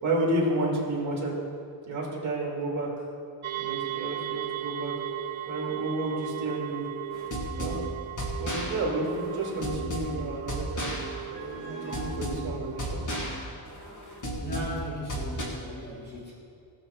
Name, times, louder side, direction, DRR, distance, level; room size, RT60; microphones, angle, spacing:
voice 1, 0.0-1.3 1.9-3.1 3.6-4.9 5.2-6.9 7.6-7.8 8.4-11.0 11.3-13.0, right 2 dB, 35° right, -3 dB, 2.5 m, -31 dB
sound 1, 3.4-13.3, right 15 dB, 85° right, 0.7 m, -37 dB
sound 2, 7.1-15.4, equal, 40° left, 1.9 m, -34 dB
voice 2, 14.4-16.3, equal, 20° left, -6 dB, 2.9 m, -37 dB
18.0 x 6.5 x 4.5 m, 2.5 s
wide cardioid pair, 170°, 47 cm